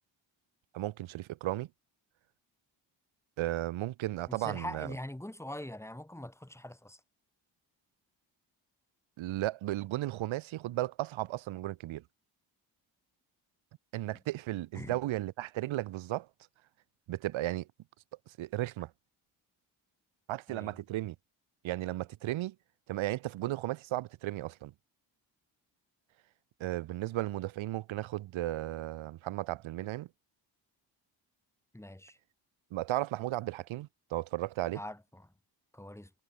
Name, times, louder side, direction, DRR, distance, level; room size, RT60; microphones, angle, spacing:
voice 1, 0.7-1.7 3.4-4.9 9.2-12.0 13.9-16.3 17.1-17.7 18.4-18.9 20.3-21.2 21.6-22.5 22.9-24.7 26.6-30.1 32.7-34.8, right 15 dB, 75° right, 0.7 m, -35 dB
voice 2, 4.3-7.0 14.7-15.0 20.5-20.7 31.7-32.2 34.7-35.3 35.7-36.1, left 1 dB, 5° left, 1.8 m, -43 dB
supercardioid pair, 50°, 48 cm